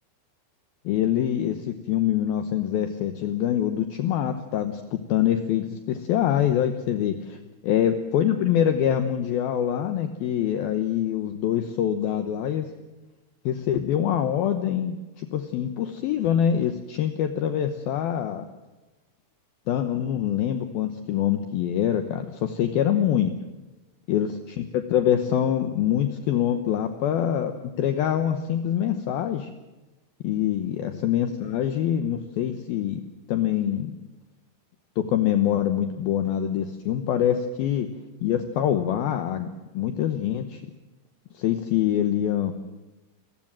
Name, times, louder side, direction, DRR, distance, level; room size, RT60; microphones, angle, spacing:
voice 1, 0.8-7.4 7.6-12.7 13.5-18.5 19.7-23.3 24.1-27.5 27.8-29.5 30.2-33.0 33.3-33.9 35.0-37.9 38.2-39.5 39.7-40.6 41.3-42.5, left 10 dB, 80° left, 8 dB, 2.1 m, -25 dB
28.0 x 15.0 x 7.6 m, 1.1 s
omnidirectional pair, 5.7 m